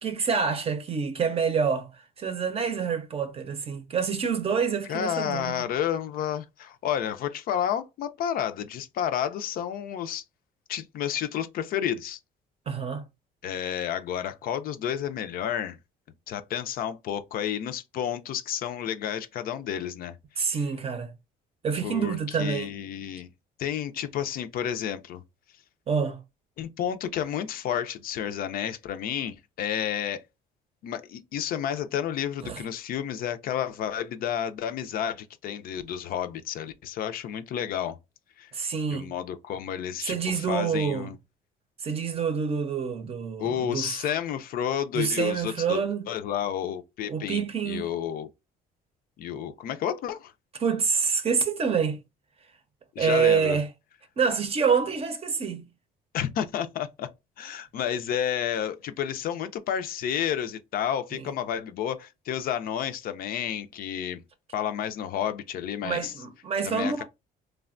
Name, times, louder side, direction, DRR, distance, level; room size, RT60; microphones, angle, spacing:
voice 1, 0.0-1.9 2.2-5.7 12.7-13.0 20.4-21.1 21.6-22.7 25.9-26.2 32.4-32.6 38.5-39.1 40.0-41.1 41.8-44.0 44.9-46.0 47.1-47.9 50.6-52.0 53.0-53.7 54.2-55.6 61.2-61.3 65.8-67.0, right 6 dB, 35° right, 0.6 m, -27 dB
voice 2, 4.9-10.2 10.7-12.2 13.4-15.8 16.3-20.2 20.5-20.6 21.8-23.3 23.6-25.2 26.6-30.2 30.8-38.0 38.4-38.5 38.9-41.2 43.4-48.3 49.2-50.3 53.0-53.6 56.1-57.1 57.4-64.2 64.5-66.1 66.6-67.0, left 9 dB, 60° left, 0.4 m, -31 dB
3.2 x 2.1 x 2.4 m
cardioid pair, 110°, 17 cm